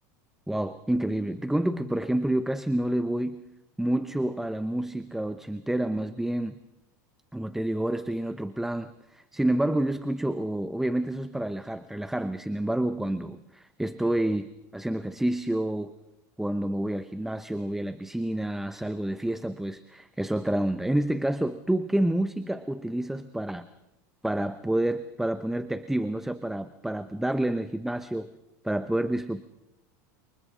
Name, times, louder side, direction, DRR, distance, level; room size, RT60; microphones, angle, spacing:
voice 1, 0.5-3.4 3.8-6.6 7.3-15.9 16.4-23.7 24.2-28.3 28.6-29.4, right 1 dB, 5° right, 12 dB, 0.8 m, -28 dB
29.5 x 28.5 x 3.8 m, 0.94 s
supercardioid pair, 120°, 9 cm